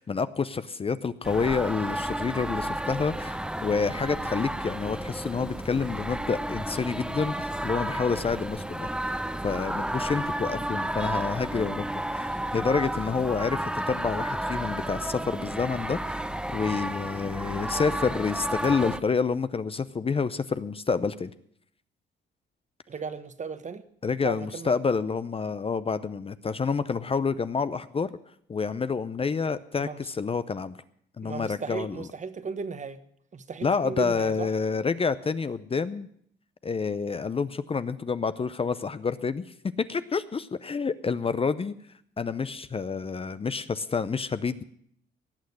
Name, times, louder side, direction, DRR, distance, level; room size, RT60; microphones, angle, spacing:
voice 1, 0.0-8.9 9.4-16.2 16.5-21.3 24.0-28.1 28.5-30.8 31.2-32.0 33.6-36.1 36.6-41.7 42.2-44.6, left 5 dB, 30° left, 14 dB, 0.6 m, -28 dB
sound 1, 1.2-19.0, right 1 dB, 5° right, 0.8 m, -32 dB
voice 2, 22.9-23.9 24.2-24.7 29.8-30.1 31.2-33.0 33.3-34.5, right 5 dB, 35° right, 11 dB, 1.2 m, -36 dB
18.0 x 6.4 x 9.6 m, 0.68 s
cardioid pair, 90°, 20 cm